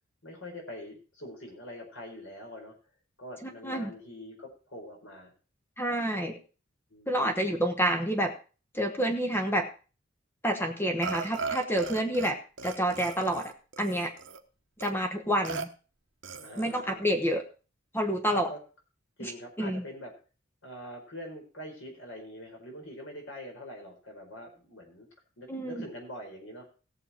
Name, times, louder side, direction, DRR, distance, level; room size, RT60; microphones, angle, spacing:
voice 1, 0.2-2.7 3.2-5.3 6.9-7.4 16.4-17.0 18.3-18.6 19.2-20.1 20.6-25.1 25.4-26.7, equal, 75° left, 1 dB, 4.7 m, -44 dB
voice 2, 3.4-3.9 5.8-6.4 7.1-8.3 8.7-9.7 10.4-12.4 12.6-13.5 13.8-14.1 14.8-15.7 16.6-17.4 17.9-18.5 19.2-19.3 19.6-19.8 25.5-25.8, right 1 dB, 10° left, 4 dB, 1.1 m, -28 dB
Burping eructation, 11.0-12.3 12.6-14.4 14.8-14.9 15.4-15.7 16.2-16.8, right 5 dB, 65° right, 1.0 m, -38 dB
17.0 x 7.1 x 4.4 m, 0.36 s
head